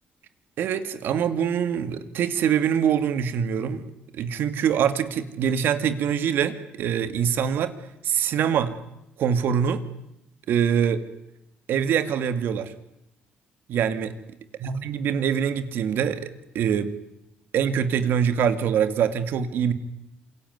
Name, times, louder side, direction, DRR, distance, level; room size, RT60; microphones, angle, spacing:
voice 1, 0.6-3.9 4.1-7.7 8.0-8.7 9.2-9.8 10.5-11.0 11.7-12.7 13.7-14.1 14.6-16.9 17.5-19.7, right 8 dB, 70° right, 11 dB, 2.2 m, -24 dB
27.0 x 23.0 x 9.5 m, 0.86 s
cardioid pair, 110°, 4 cm